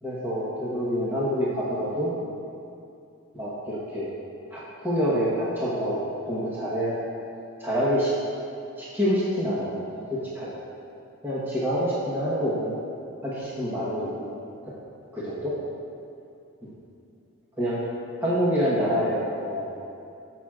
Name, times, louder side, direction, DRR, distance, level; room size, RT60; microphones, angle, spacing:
voice 1, 0.0-2.1 3.3-4.1 4.5-7.0 7.6-8.1 8.8-10.5 11.2-12.7 13.2-14.3 15.1-15.5 16.6-16.7 17.6-17.8 18.2-19.7, equal, 10° right, -9 dB, 1.1 m, -27 dB
15.0 x 6.1 x 2.4 m, 2.6 s
head